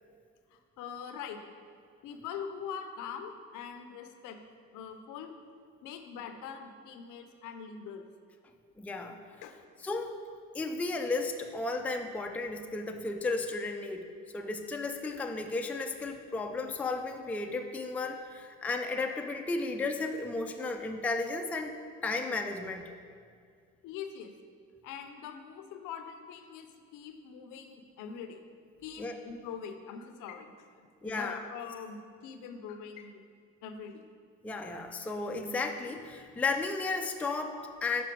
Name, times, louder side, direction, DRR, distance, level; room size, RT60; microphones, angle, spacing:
voice 1, 0.5-1.5 2.0-4.4 4.7-5.3 5.8-8.0 9.4-9.5 23.8-24.3 24.8-28.4 28.8-30.7 31.0-33.3 33.6-34.0, left 7 dB, 70° left, 7 dB, 0.6 m, -43 dB
voice 2, 8.8-9.2 9.8-10.1 10.5-14.1 14.3-21.8 22.0-22.8 29.0-29.1 31.0-31.4 34.4-38.0, left 3 dB, 5° left, 4 dB, 0.3 m, -34 dB
6.1 x 4.3 x 4.5 m, 2.2 s
supercardioid pair, 85°, 32 cm